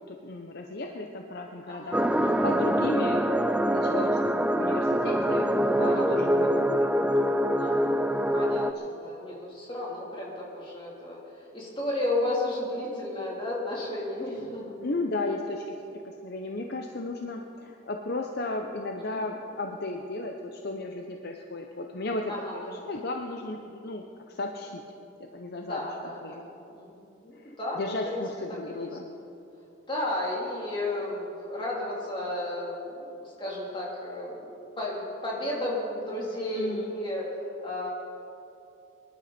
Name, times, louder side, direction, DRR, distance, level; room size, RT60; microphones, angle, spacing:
voice 1, 0.1-3.3 3.7-7.1 8.1-8.3 14.8-15.6 15.9-24.8 25.3-25.9 26.2-26.5 27.4-29.1 36.5-36.9, left 2 dB, 50° left, 3 dB, 0.8 m, -35 dB
voice 2, 1.7-2.0 5.8-6.3 7.6-14.7 19.1-19.2 22.3-22.8 25.6-27.8 28.1-28.2 28.7-28.9 29.9-37.3 37.6-37.9, left 1 dB, 25° left, -5 dB, 3.5 m, -33 dB
sound 1, 1.9-8.7, equal, 5° right, 0.3 m, -24 dB
24.0 x 11.5 x 4.4 m, 2.8 s
head